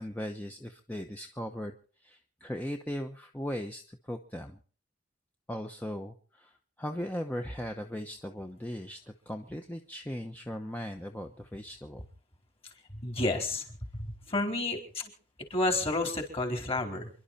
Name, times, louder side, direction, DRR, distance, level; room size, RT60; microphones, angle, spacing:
voice 1, 0.0-1.7 2.0-4.6 5.5-6.5 6.8-9.0 9.3-12.0, equal, 10° left, 4 dB, 1.0 m, -38 dB
voice 2, 12.9-13.6 13.9-15.1 15.5-17.1, left 2 dB, 30° left, 3 dB, 4.1 m, -30 dB
28.0 x 11.5 x 4.3 m, 0.41 s
head